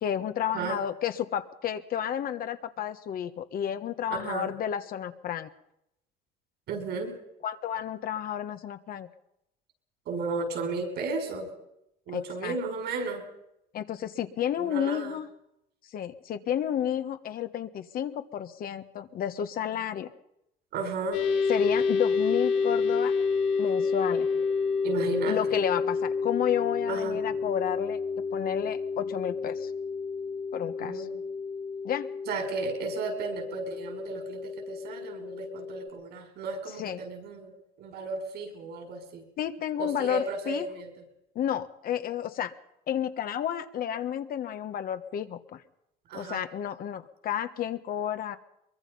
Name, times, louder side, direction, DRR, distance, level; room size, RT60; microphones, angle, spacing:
voice 1, 0.0-5.5 7.4-9.1 12.1-12.6 13.7-15.3 15.9-20.1 21.5-23.1 23.6-24.3 25.3-28.0 28.3-29.7 30.5-31.1 31.8-32.1 36.8-37.0 39.4-40.7 41.3-42.5 42.9-45.6 46.1-48.4, left 10 dB, 60° left, 9 dB, 1.4 m, -31 dB
voice 2, 6.7-7.1 10.1-11.5 12.1-13.3 14.6-15.2 20.7-21.2 24.8-25.4 26.9-27.2 30.8-31.2 32.3-37.5 37.8-39.2 39.8-40.9 46.1-46.4, right 4 dB, 75° right, 5 dB, 6.0 m, -34 dB
sound 1, 21.1-35.9, left 5 dB, 90° left, 6.4 m, -29 dB
23.0 x 22.5 x 5.6 m, 0.81 s
cardioid pair, 110°, 17 cm